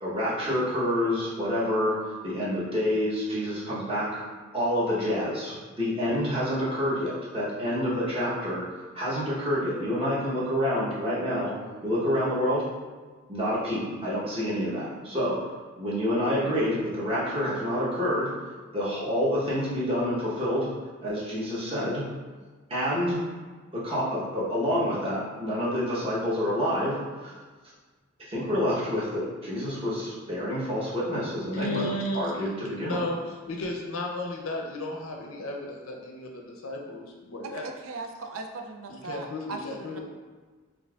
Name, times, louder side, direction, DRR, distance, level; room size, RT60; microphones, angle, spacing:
voice 1, 0.0-1.9 2.2-4.2 4.5-8.6 8.9-11.5 11.8-12.6 13.3-15.4 15.8-18.3 18.7-20.7 21.0-22.0 22.7-23.2 23.7-27.4 28.3-33.0, equal, 30° right, -8 dB, 1.0 m, -28 dB
voice 2, 31.5-32.3 32.8-37.7 38.9-40.0, left 1 dB, 80° left, 1 dB, 0.6 m, -34 dB
voice 3, 37.4-40.0, right 3 dB, 75° right, 4 dB, 0.4 m, -38 dB
5.3 x 2.5 x 2.3 m, 1.4 s
head